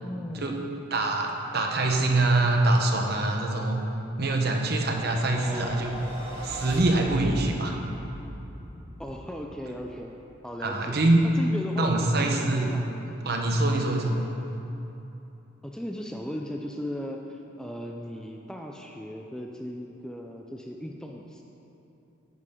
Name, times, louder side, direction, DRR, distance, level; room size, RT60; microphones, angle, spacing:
voice 1, 0.0-0.7 5.3-6.2 9.0-10.1 10.4-11.0 11.3-13.2 14.1-14.3 15.6-21.4, equal, 5° left, 1 dB, 0.4 m, -37 dB
voice 2, 0.9-3.8 4.2-5.9 6.4-7.7 10.6-11.2 11.8-12.7 13.2-14.1, right 2 dB, 50° right, 2 dB, 1.0 m, -24 dB
sound 1, 5.4-9.8, equal, 30° right, 2.3 m, -38 dB
9.9 x 9.7 x 3.8 m, 2.9 s
head